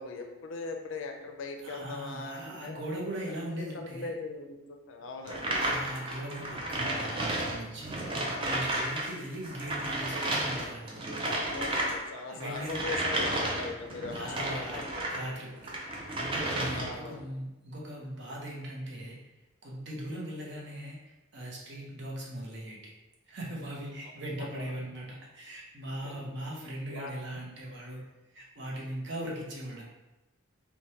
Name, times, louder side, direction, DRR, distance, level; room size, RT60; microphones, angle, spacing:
voice 1, 0.0-2.8 3.3-5.6 11.2-15.1 16.6-17.3 24.0-24.7 26.0-26.2 26.9-27.1, left 3 dB, 70° left, 3 dB, 0.4 m, -40 dB
voice 2, 1.6-4.1 5.6-11.4 12.3-12.8 14.1-14.8 15.1-15.7 16.1-19.2 19.6-21.0 21.3-22.8 23.3-28.1 28.3-29.8, right 1 dB, 60° right, -3 dB, 0.7 m, -39 dB
sound 1, 5.3-9.1 9.3-15.2 15.6-17.1, right 1 dB, 25° right, 0.4 m, -32 dB
3.2 x 2.1 x 2.8 m, 1.0 s
head